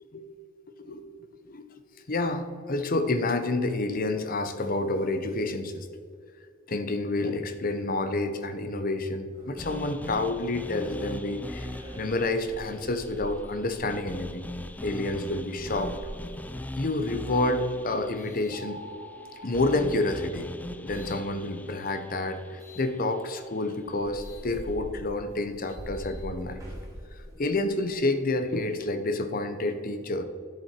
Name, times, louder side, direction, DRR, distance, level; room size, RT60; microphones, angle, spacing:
voice 1, 2.1-5.9 6.7-11.7 12.0-14.5 14.8-15.9 16.8-18.8 19.4-20.5 20.8-26.6 27.2-30.2, left 2 dB, 45° left, 8 dB, 0.8 m, -29 dB
sound 1, 9.3-19.3 20.0-21.2 22.6-22.9 23.4-23.5 23.8-27.9, equal, 15° right, 2.4 m, -45 dB
sound 2, 9.6-23.7, left 1 dB, 10° left, 0.3 m, -41 dB
sound 3, 18.5-21.0, equal, 65° left, 1.8 m, -46 dB
10.5 x 7.7 x 4.5 m, 2.1 s
head